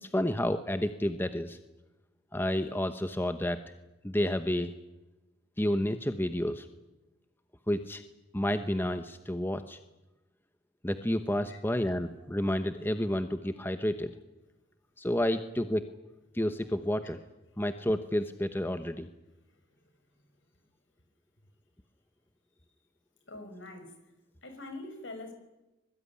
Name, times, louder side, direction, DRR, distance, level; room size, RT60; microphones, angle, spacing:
voice 1, 0.0-1.6 2.3-3.6 4.0-4.7 5.6-6.7 7.7-8.0 8.3-9.8 10.8-14.1 15.0-15.9 16.3-17.2 17.6-19.1, left 1 dB, 10° left, 9 dB, 1.0 m, -30 dB
voice 2, 23.2-23.9 24.4-25.3, left 2 dB, 65° left, 7 dB, 5.8 m, -44 dB
24.5 x 22.0 x 9.9 m, 1.0 s
head